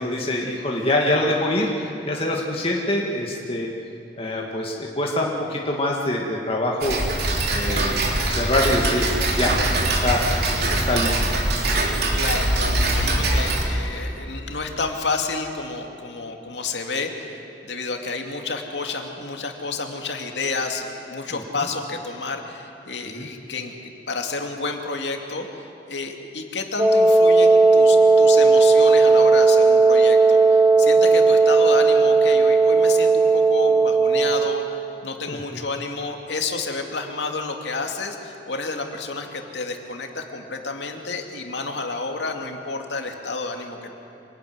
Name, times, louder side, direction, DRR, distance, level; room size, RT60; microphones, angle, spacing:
voice 1, 0.0-3.7 4.2-7.0 7.5-8.0 8.3-9.6 9.9-10.2 10.7-11.5 21.3-21.4 23.1-23.3 35.3-35.4, left 1 dB, 35° left, -1 dB, 2.2 m, -24 dB
Tick-tock, 6.8-13.6, right 2 dB, 65° right, 3.4 m, -22 dB
voice 2, 12.1-43.9, left 3 dB, 80° left, 3 dB, 2.5 m, -30 dB
Wind instrument woodwind instrument, 26.8-34.6, right 3 dB, 20° right, 1.9 m, -15 dB
26.5 x 19.0 x 9.6 m, 2.7 s
head